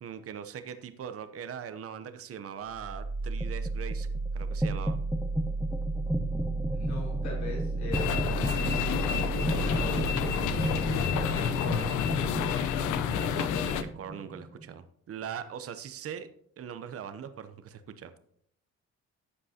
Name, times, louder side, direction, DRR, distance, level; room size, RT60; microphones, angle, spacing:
voice 1, 0.0-4.1 4.3-5.0 13.3-16.3 16.6-18.1, right 8 dB, 50° right, 10 dB, 0.8 m, -41 dB
sound 1, 2.7-14.6, right 2 dB, ahead, 0.8 m, -32 dB
voice 2, 6.7-11.9, left 3 dB, 65° left, -3 dB, 3.7 m, -41 dB
sound 2, 7.9-13.8, left 8 dB, 85° left, 0.7 m, -29 dB
11.5 x 7.5 x 2.8 m, 0.67 s
cardioid pair, 90°, 30 cm